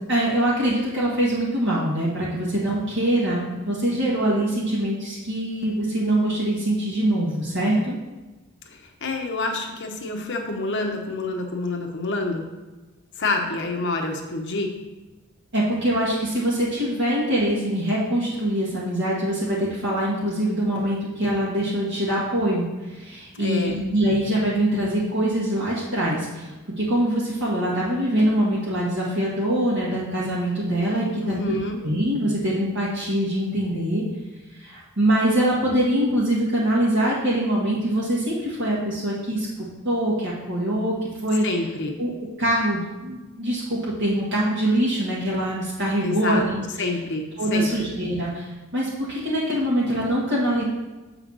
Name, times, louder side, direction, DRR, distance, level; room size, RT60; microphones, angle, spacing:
voice 1, 0.0-8.0 15.5-26.5 26.8-31.6 31.8-34.0 34.6-39.5 39.8-41.5 42.0-42.1 42.4-46.6 47.4-50.6, right 1 dB, 60° right, -7 dB, 1.7 m, -23 dB
voice 2, 8.7-12.4 13.2-14.7 23.3-23.8 31.2-31.8 41.4-42.0 46.0-46.4 46.8-47.9, left 2 dB, 55° left, 2 dB, 1.0 m, -27 dB
7.2 x 4.0 x 6.1 m, 1.1 s
head